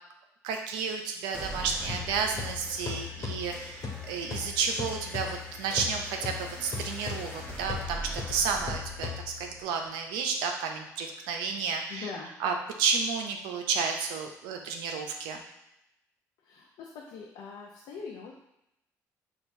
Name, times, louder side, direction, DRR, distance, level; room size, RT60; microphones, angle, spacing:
voice 1, 0.4-9.1 9.4-12.1 12.4-15.4, right 5 dB, 80° right, 3 dB, 0.5 m, -31 dB
sound 1, 1.3-10.3, equal, 15° left, 1.1 m, -43 dB
sound 2, 1.9-9.6, left 6 dB, 50° left, 1.2 m, -39 dB
voice 2, 11.9-12.3 16.4-18.3, left 5 dB, 75° left, -2 dB, 0.5 m, -42 dB
5.9 x 2.3 x 2.6 m, 0.85 s
hypercardioid pair, 55°, 8 cm